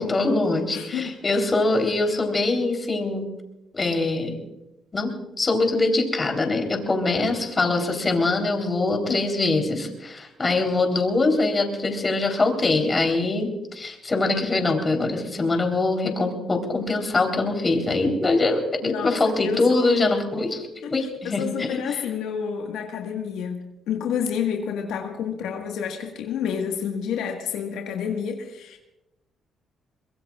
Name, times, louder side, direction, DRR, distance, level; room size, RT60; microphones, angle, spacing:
voice 1, 0.0-3.2 3.7-4.4 4.9-22.0, left 2 dB, 30° left, 3 dB, 3.7 m, -23 dB
voice 2, 0.7-1.1 9.1-9.2 18.8-19.6 20.8-20.9 21.2-28.8, left 7 dB, 90° left, 2 dB, 1.6 m, -29 dB
23.5 x 21.5 x 2.5 m, 0.94 s
cardioid pair, 90°, 0 cm